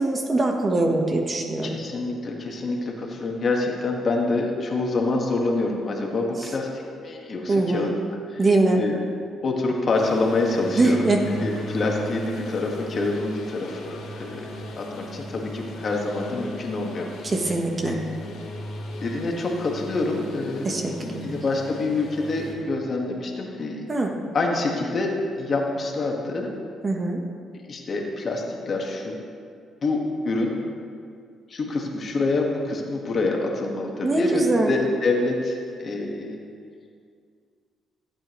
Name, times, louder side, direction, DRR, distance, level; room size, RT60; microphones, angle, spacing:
voice 1, 0.0-1.7 7.5-8.0 8.4-8.8 10.8-11.2 17.2-18.0 20.6-21.3 23.9-24.1 26.8-27.2 34.0-34.7, right 2 dB, 30° right, 3 dB, 1.2 m, -22 dB
voice 2, 1.6-7.9 8.3-8.4 8.7-9.0 9.4-11.1 11.4-14.5 14.8-17.3 17.8-18.0 19.0-20.7 21.0-23.8 24.3-25.1 25.4-26.5 27.5-29.1 29.8-30.0 30.2-30.5 31.5-36.4, left 3 dB, 45° left, 0 dB, 1.6 m, -26 dB
Lawn mower, 9.9-22.5, equal, 80° left, 2.5 m, -37 dB
15.0 x 8.6 x 3.1 m, 2.2 s
cardioid pair, 90°, 0 cm